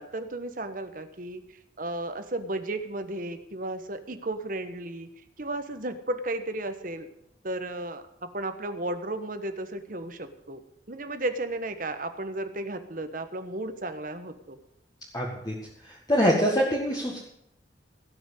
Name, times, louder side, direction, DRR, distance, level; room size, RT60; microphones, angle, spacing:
voice 1, 0.0-1.4 1.8-5.1 5.4-7.1 7.4-10.6 10.9-14.6, right 2 dB, 50° right, 9 dB, 1.2 m, -34 dB
voice 2, 15.1-15.5 15.8-17.2, equal, 20° left, -3 dB, 1.7 m, -24 dB
17.0 x 6.1 x 8.1 m, 0.79 s
head